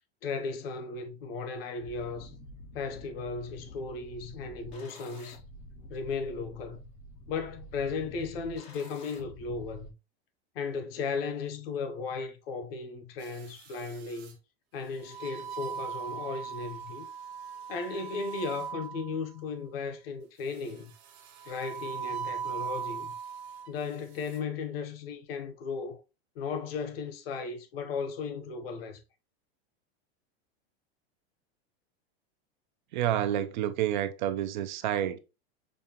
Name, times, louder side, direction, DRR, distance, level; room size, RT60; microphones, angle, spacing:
voice 1, 0.2-2.3 2.7-5.4 5.9-6.8 7.3-9.9 10.5-14.4 14.7-17.1 17.7-20.9 21.4-23.1 23.7-26.0 26.3-29.0, left 4 dB, 60° left, 0.8 m, -36 dB
sound 1, 1.8-9.9, left 1 dB, 20° left, 0.4 m, -48 dB
sound 2, 13.2-14.3 15.0-19.3 20.5-23.7 24.1-24.4, right 7 dB, 70° right, 1.1 m, -40 dB
voice 2, 32.9-35.2, right 11 dB, 45° right, 0.4 m, -29 dB
5.3 x 2.2 x 2.8 m
supercardioid pair, 170°, 33 cm